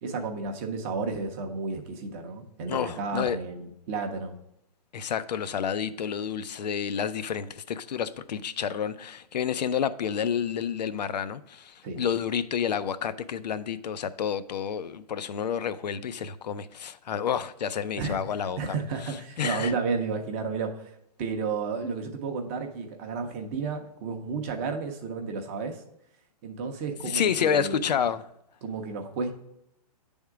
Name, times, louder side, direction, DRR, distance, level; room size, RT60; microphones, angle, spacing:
voice 1, 0.0-4.4 11.8-12.0 18.0-18.2 18.6-20.9 21.2-25.8 26.4-28.0 28.6-29.3, right 4 dB, 20° right, 4 dB, 0.6 m, -32 dB
voice 2, 2.7-3.4 4.9-18.8 19.4-19.7 27.0-28.2, left 8 dB, 90° left, 14 dB, 0.5 m, -29 dB
8.8 x 3.6 x 4.6 m, 0.80 s
hypercardioid pair, 165°, 21 cm